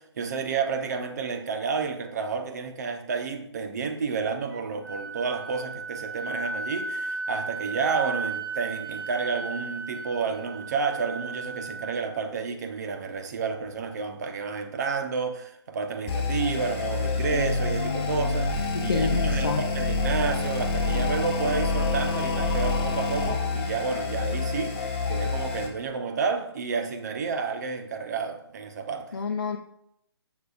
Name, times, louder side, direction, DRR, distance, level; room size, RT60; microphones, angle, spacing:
voice 1, 0.0-29.1, right 5 dB, 40° right, 1.1 m, -30 dB
Wind instrument woodwind instrument, 4.5-12.2, right 3 dB, 55° right, 3.0 m, -35 dB
sound 1, 16.1-25.7, left 3 dB, 25° left, 1.6 m, -27 dB
voice 2, 18.7-19.6 29.1-29.6, left 5 dB, 55° left, 0.8 m, -28 dB
14.5 x 6.2 x 2.5 m
figure-of-eight pair, 145°, 14 cm